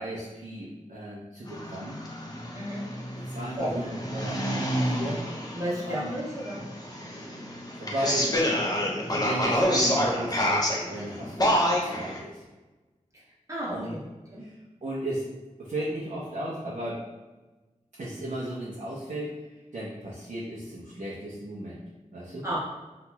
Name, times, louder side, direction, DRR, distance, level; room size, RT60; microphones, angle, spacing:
voice 1, 0.0-2.0 3.2-5.6 5.9-6.1 7.8-8.4 9.1-12.4 13.7-13.9 14.4-14.5 14.8-15.3 15.6-17.0 18.0-19.4 19.7-21.8 22.1-22.4, right 1 dB, 65° right, -6 dB, 0.6 m, -35 dB
sound 1, 1.5-12.2, equal, 30° left, 0.6 m, -28 dB
voice 2, 2.5-2.8 3.6-3.8 5.5-6.6 13.5-14.0 14.3-14.4 22.4-22.6, equal, 25° right, -8 dB, 1.2 m, -32 dB
2.9 x 2.8 x 2.2 m, 1.2 s
wide cardioid pair, 50°, 13 cm